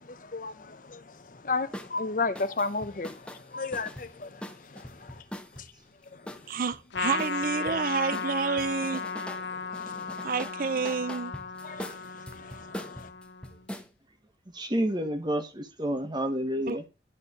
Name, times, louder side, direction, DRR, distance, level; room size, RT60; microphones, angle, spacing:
voice 1, 0.1-1.0 1.4-3.1 3.5-4.4 4.7-5.1 9.9-10.0 11.6-11.9 12.4-13.1, left 3 dB, 45° left, 0.8 m, -33 dB
sound 1, 1.7-1.9 2.4-5.7 6.3-7.8 8.1-9.5 9.7-13.9, equal, 5° left, 0.8 m, -42 dB
voice 2, 6.5-9.1 10.2-11.3 16.7-16.9, right 5 dB, 50° right, 0.4 m, -29 dB
Trumpet, 6.9-13.6, left 5 dB, 75° left, 0.7 m, -35 dB
voice 3, 14.5-16.8, equal, 25° right, 1.3 m, -29 dB
11.0 x 4.4 x 6.6 m
head